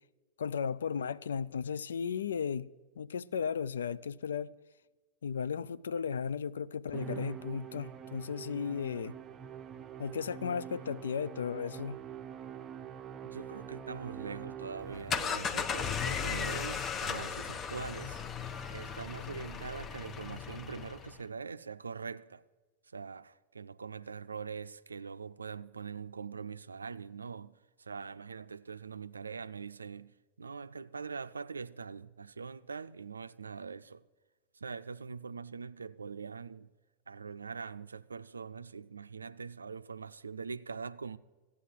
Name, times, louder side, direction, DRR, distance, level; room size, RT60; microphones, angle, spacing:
voice 1, 0.4-2.7 3.0-4.5 5.2-9.1 10.0-12.0, left 6 dB, 65° left, 0.4 m, -35 dB
Musical instrument, 6.9-15.5, right 8 dB, 25° right, 0.6 m, -45 dB
voice 2, 13.2-18.2 18.7-22.4 22.9-34.0 34.5-36.7 37.1-41.2, right 5 dB, 75° right, 0.4 m, -43 dB
sound 1, 14.8-21.2, left 6 dB, 25° left, 0.6 m, -36 dB
14.0 x 8.5 x 7.4 m
figure-of-eight pair, 90°, 0 cm